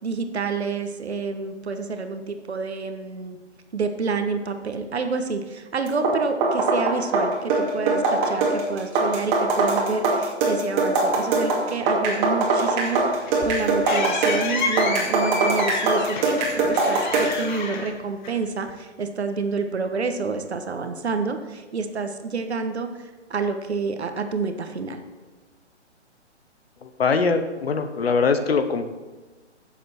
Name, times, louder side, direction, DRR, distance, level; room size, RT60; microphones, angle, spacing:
voice 1, 0.0-3.4 3.7-22.9 23.3-25.0, right 4 dB, 65° right, 7 dB, 1.4 m, -28 dB
sound 1, 5.9-17.4, right 3 dB, 25° right, 2.5 m, -22 dB
sound 2, 12.9-18.7, left 4 dB, 40° left, 1.3 m, -30 dB
voice 2, 27.0-28.9, left 4 dB, 55° left, 9 dB, 1.2 m, -22 dB
15.0 x 7.5 x 4.4 m, 1.3 s
figure-of-eight pair, 130°, 36 cm